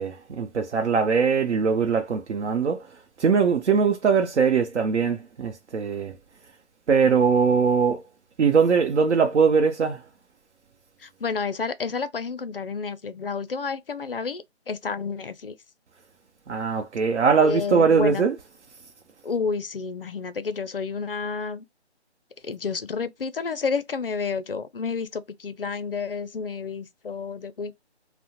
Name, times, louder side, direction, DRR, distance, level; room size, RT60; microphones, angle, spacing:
voice 1, 0.0-2.8 3.2-6.1 6.9-8.0 8.4-10.0 16.5-18.4, right 5 dB, 90° right, 0.7 m, -21 dB
voice 2, 11.0-15.6 17.4-18.3 19.2-21.6 22.4-27.7, left 5 dB, 55° left, 0.4 m, -30 dB
2.7 x 2.0 x 2.9 m
hypercardioid pair, 180°, 34 cm